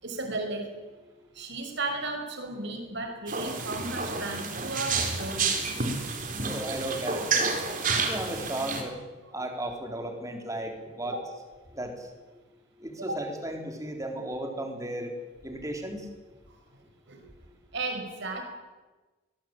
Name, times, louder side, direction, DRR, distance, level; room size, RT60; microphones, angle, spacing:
voice 1, 0.0-0.7 1.3-5.5 13.0-13.2 17.1-17.2 17.7-18.4, right 2 dB, 55° right, 4 dB, 5.8 m, -34 dB
sound 1, 3.3-8.8, right 4 dB, 40° right, 4.1 m, -30 dB
voice 2, 6.4-7.6 8.1-8.9 9.3-11.2 11.7-12.0 12.8-15.1 15.4-16.1, right 1 dB, 15° right, 3 dB, 3.8 m, -35 dB
24.5 x 20.5 x 9.0 m, 1.2 s
head